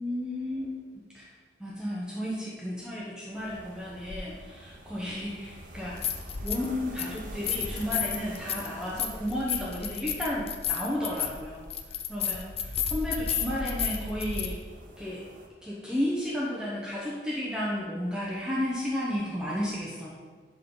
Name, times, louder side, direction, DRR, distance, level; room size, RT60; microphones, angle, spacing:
voice 1, 0.0-1.2 1.6-11.7 12.1-14.5 15.0-15.2 15.6-20.1, left 1 dB, 5° right, -6 dB, 0.9 m, -33 dB
sound 1, 3.3-15.5, right 1 dB, 50° right, 0.8 m, -48 dB
sound 2, 4.1-4.2 5.8-6.7 7.0-14.5, left 7 dB, 35° left, 0.5 m, -32 dB
11.5 x 3.8 x 3.9 m, 1.5 s
head